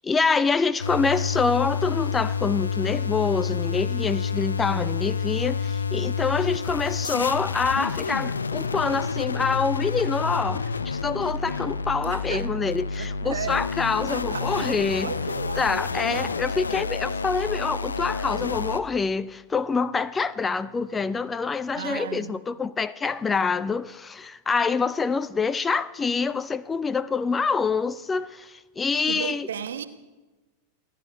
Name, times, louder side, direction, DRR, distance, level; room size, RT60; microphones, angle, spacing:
voice 1, 0.0-15.1 15.6-29.5, left 5 dB, 15° left, 0.4 m, -26 dB
sound 1, 0.8-18.8, left 5 dB, 75° left, 0.7 m, -29 dB
voice 2, 12.0-12.5 13.0-13.7 14.0-14.7 15.0-16.3 21.7-22.4 29.0-29.9, right 8 dB, 65° right, 1.0 m, -35 dB
28.5 x 11.0 x 4.3 m
figure-of-eight pair, 90°, 0 cm